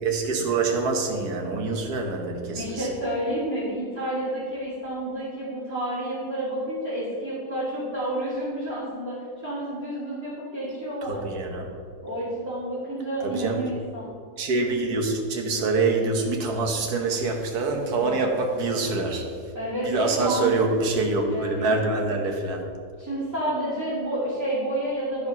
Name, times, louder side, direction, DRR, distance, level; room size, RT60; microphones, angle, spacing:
voice 1, 0.0-2.9 11.0-11.7 13.2-13.6 14.4-19.3 19.9-22.7, right 3 dB, 70° right, 2 dB, 1.7 m, -25 dB
voice 2, 2.5-9.2 9.4-11.2 12.0-14.1 17.9-18.2 19.5-20.5 21.3-21.8 23.0-25.3, right 1 dB, 10° right, -12 dB, 2.7 m, -30 dB
13.0 x 4.9 x 5.4 m, 2.2 s
omnidirectional pair, 1.8 m